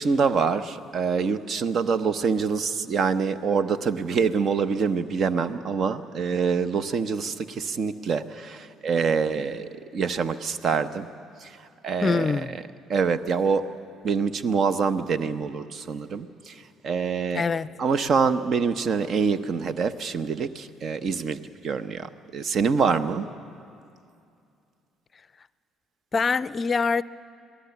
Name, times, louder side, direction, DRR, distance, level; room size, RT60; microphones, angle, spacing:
voice 1, 0.0-11.1 11.4-11.5 11.8-12.3 12.9-13.6 14.0-16.5 16.8-17.4 17.8-21.4 21.6-23.3, right 5 dB, 50° right, 0.9 m, -25 dB
voice 2, 12.0-12.5 17.3-17.7 26.1-27.0, left 5 dB, 40° left, 0.4 m, -24 dB
26.5 x 18.5 x 7.1 m
hypercardioid pair, 50°, 0 cm